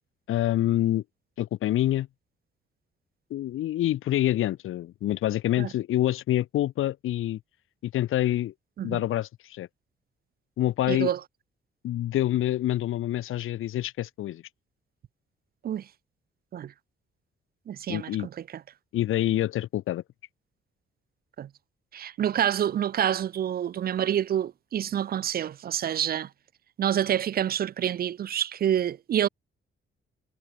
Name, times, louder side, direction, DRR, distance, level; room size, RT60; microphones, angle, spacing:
voice 1, 0.3-1.0 1.4-2.1 3.3-7.4 7.8-8.5 8.8-9.7 10.6-11.1 11.8-14.4 17.9-18.3 18.9-20.0, left 13 dB, 80° left, 1.0 m, -26 dB
voice 2, 10.9-11.2 15.6-15.9 16.5-16.7 17.7-18.1 21.4-21.5 21.9-26.3 26.8-29.3, right 10 dB, 45° right, 0.5 m, -27 dB
cardioid pair, 145°, 21 cm